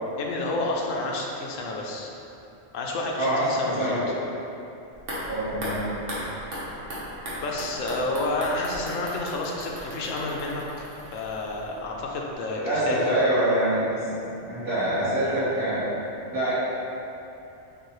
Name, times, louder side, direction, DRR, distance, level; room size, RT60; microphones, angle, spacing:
voice 1, 0.2-2.1 2.7-3.9 7.4-13.0, left 2 dB, 90° left, -1 dB, 1.0 m, -30 dB
voice 2, 3.2-4.2 5.3-5.9 12.5-14.0 14.5-15.8 16.3-16.5, right 1 dB, 45° right, -13 dB, 1.7 m, -25 dB
sound 1, 4.9-12.0 12.3-12.4, equal, 75° right, 1.4 m, -37 dB
7.0 x 2.4 x 3.1 m, 2.8 s
omnidirectional pair, 1.3 m